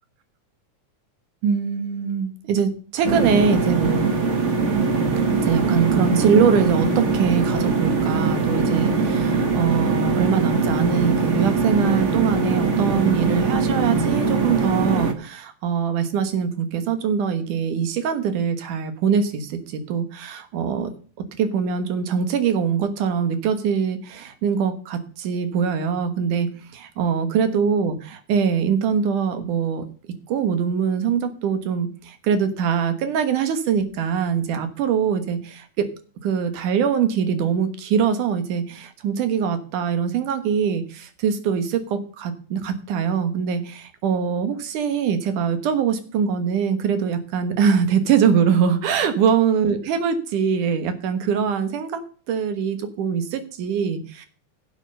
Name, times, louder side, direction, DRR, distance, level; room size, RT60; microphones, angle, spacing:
voice 1, 1.4-4.1 5.4-20.9 21.4-26.5 26.7-29.8 30.3-35.9 36.2-52.0 52.3-54.3, right 7 dB, 85° right, 10 dB, 2.9 m, -23 dB
sound 1, 3.0-15.1, right 4 dB, 45° right, 1.0 m, -21 dB
11.0 x 7.5 x 6.5 m, 0.41 s
omnidirectional pair, 3.5 m